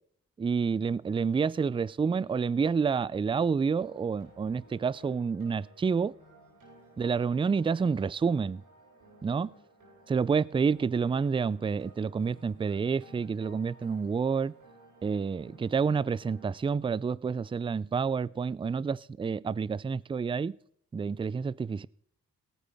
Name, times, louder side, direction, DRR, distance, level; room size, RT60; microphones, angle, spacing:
voice 1, 0.4-6.1 7.0-8.6 9.2-9.5 10.1-14.5 15.0-20.6 20.9-21.9, right 5 dB, 15° right, 0.3 m, -29 dB
sound 1, 3.8-16.6, right 2 dB, 70° right, 6.3 m, -56 dB
18.0 x 9.0 x 3.5 m
supercardioid pair, 45°, 35 cm